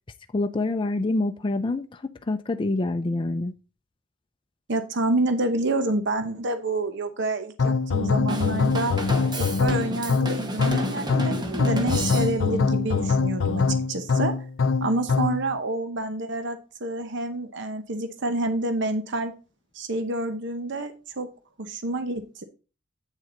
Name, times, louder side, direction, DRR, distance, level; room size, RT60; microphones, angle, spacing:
voice 1, 0.3-3.5, left 2 dB, 25° left, 0.4 m, -26 dB
voice 2, 4.7-9.0 9.4-14.3 14.8-19.3 19.7-21.3 21.6-22.4, right 2 dB, 65° right, 0.9 m, -28 dB
sound 1, 7.6-15.5, left 4 dB, 75° left, 0.5 m, -23 dB
Drum kit / Drum, 8.3-12.6, right 1 dB, 20° right, 1.2 m, -32 dB
8.4 x 6.5 x 3.9 m
head